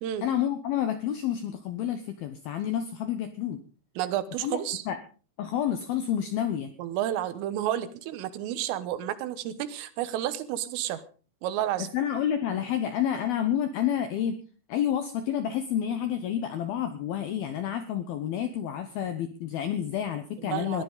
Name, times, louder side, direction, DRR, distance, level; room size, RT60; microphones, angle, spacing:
voice 1, 0.2-3.6 4.4-4.6 4.9-5.0 5.4-6.7 11.9-14.4 14.7-20.8, left 10 dB, 80° left, 9 dB, 2.2 m, -29 dB
voice 2, 4.0-4.8 6.8-11.0 11.4-11.9 20.4-20.8, right 12 dB, 85° right, 13 dB, 3.8 m, -31 dB
20.5 x 15.0 x 4.0 m, 0.37 s
omnidirectional pair, 5.7 m